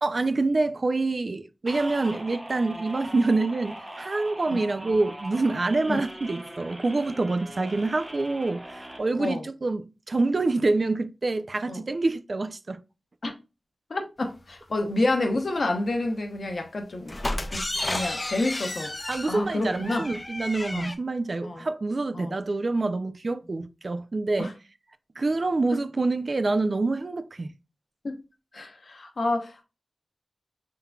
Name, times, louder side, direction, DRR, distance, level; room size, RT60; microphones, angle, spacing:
voice 1, 0.0-12.8 19.1-24.5 25.2-27.5, right 3 dB, 50° right, 0.4 m, -26 dB
sound 1, 1.7-9.0, right 1 dB, 20° right, 1.0 m, -41 dB
voice 2, 13.9-17.1 17.5-18.9 19.3-20.0 20.7-20.9 21.4-21.6 22.1-22.3 24.4-24.5 28.0-28.2 28.5-29.6, left 2 dB, 65° left, 0.9 m, -29 dB
sound 2, 17.1-20.9, left 1 dB, 30° left, 0.5 m, -32 dB
5.5 x 3.8 x 2.3 m
wide cardioid pair, 80°, 0 cm